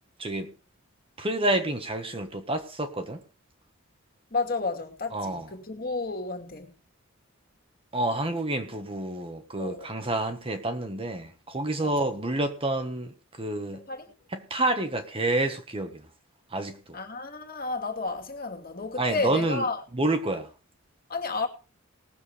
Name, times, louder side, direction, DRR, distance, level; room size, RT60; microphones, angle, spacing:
voice 1, 0.2-0.5 1.2-3.2 5.1-5.5 7.9-13.1 13.4-13.8 14.3-16.0 16.5-17.0 19.0-19.6 19.9-20.5, right 2 dB, 25° right, 1.3 m, -28 dB
voice 2, 4.3-6.7 9.6-10.0 11.8-12.0 13.7-14.1 16.9-19.8 21.1-21.5, left 3 dB, 45° left, 2.5 m, -32 dB
19.0 x 7.4 x 5.0 m
head